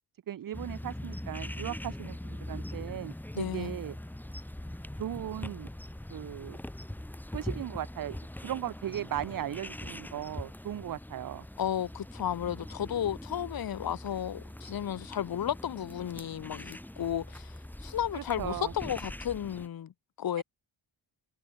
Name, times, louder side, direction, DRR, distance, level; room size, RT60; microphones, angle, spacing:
voice 1, 0.3-3.9 5.0-5.7 6.1-6.6 7.3-11.4 18.1-18.7 20.4-20.5, right 11 dB, 45° right, 0.5 m, -37 dB
sound 1, 0.5-19.7, left 1 dB, 5° left, 0.8 m, -42 dB
voice 2, 3.3-3.8 11.6-17.5 17.8-19.9 20.2-20.4, left 10 dB, 50° left, 0.8 m, -33 dB
wide cardioid pair, 160°, 47 cm